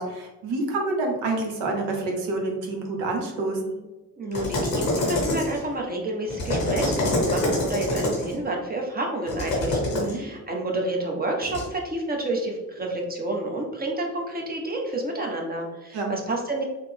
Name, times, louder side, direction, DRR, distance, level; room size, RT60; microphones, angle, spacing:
voice 1, 0.0-3.6 9.9-10.2 15.9-16.1, right 2 dB, 65° right, 2 dB, 0.9 m, -28 dB
voice 2, 4.2-16.6, right 1 dB, 20° right, 1 dB, 0.7 m, -29 dB
sound 1, 4.3-5.7 6.3-8.3 9.3-10.1 11.4-11.6, left 1 dB, 90° left, 0.9 m, -25 dB
3.2 x 2.0 x 3.3 m, 1.1 s
hypercardioid pair, 50°, 47 cm